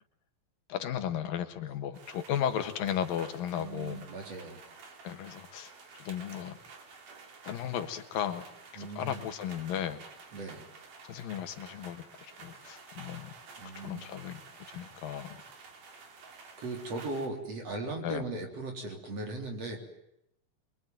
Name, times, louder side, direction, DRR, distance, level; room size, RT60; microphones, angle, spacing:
voice 1, 0.7-4.1 5.0-6.6 7.4-8.4 8.7-10.0 11.0-13.3 13.8-15.4 18.0-18.2, left 9 dB, 80° left, 9 dB, 3.1 m, -35 dB
sound 1, 1.9-17.3, right 4 dB, 65° right, 4.3 m, -51 dB
voice 2, 3.6-4.6 8.8-9.2 10.3-10.7 13.6-14.1 16.6-19.8, right 2 dB, 45° right, 2 dB, 4.5 m, -38 dB
25.0 x 22.5 x 9.3 m, 0.83 s
omnidirectional pair, 4.0 m